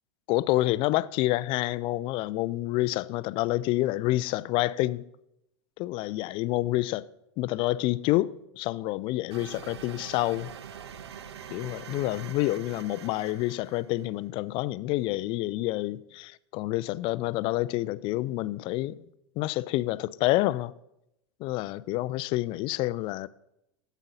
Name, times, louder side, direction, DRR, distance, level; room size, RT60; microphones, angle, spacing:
voice 1, 0.3-5.0 5.8-7.1 7.4-10.5 11.5-19.0 19.4-20.7 21.4-23.3, left 17 dB, 35° left, 0.4 m, -28 dB
sound 1, 9.3-14.0, right 8 dB, 70° right, 0.6 m, -44 dB
12.5 x 8.1 x 4.1 m
figure-of-eight pair, 90°, 14 cm